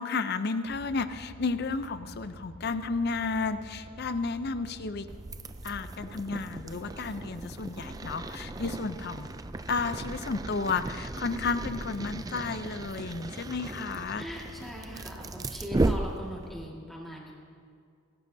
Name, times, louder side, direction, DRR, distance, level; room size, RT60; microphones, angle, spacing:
voice 1, 0.0-5.1 5.6-9.3 9.7-14.3, left 4 dB, 50° left, 12 dB, 0.5 m, -32 dB
sound 1, 0.6-16.6, equal, 60° right, 2.0 m, -49 dB
sound 2, 5.1-16.7, right 2 dB, 15° right, 0.3 m, -36 dB
voice 2, 14.1-17.3, equal, ahead, -3 dB, 1.9 m, -40 dB
27.0 x 12.0 x 2.7 m, 2.2 s
head